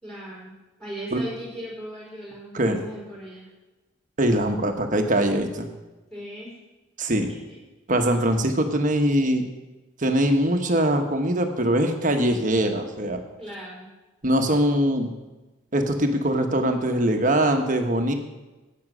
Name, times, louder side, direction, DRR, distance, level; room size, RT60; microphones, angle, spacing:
voice 1, 0.0-3.5 6.1-6.6 8.0-8.3 13.4-13.9, right 1 dB, 5° left, -5 dB, 4.5 m, -38 dB
voice 2, 4.2-5.7 7.0-7.3 7.9-9.4 10.0-13.2 14.2-15.1 15.7-18.1, right 1 dB, 40° right, 5 dB, 1.2 m, -22 dB
10.5 x 8.8 x 6.3 m, 1.1 s
head